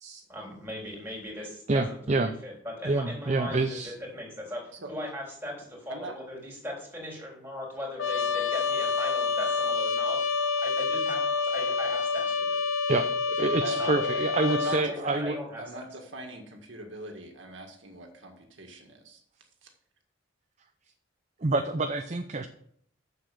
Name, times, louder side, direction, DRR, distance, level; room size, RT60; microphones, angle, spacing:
voice 1, 0.3-10.2 10.6-12.6 13.7-15.8, left 1 dB, 10° right, -2 dB, 3.6 m, -39 dB
voice 2, 1.7-2.3 2.8-3.9 12.9-13.1 13.4-15.4 21.4-22.5, right 2 dB, 35° right, 7 dB, 0.6 m, -27 dB
Trumpet, 8.0-14.9, left 4 dB, 80° left, 1.0 m, -28 dB
voice 3, 13.6-14.0 14.5-19.2, right 2 dB, 70° right, 3 dB, 1.9 m, -40 dB
7.4 x 7.1 x 6.8 m, 0.66 s
head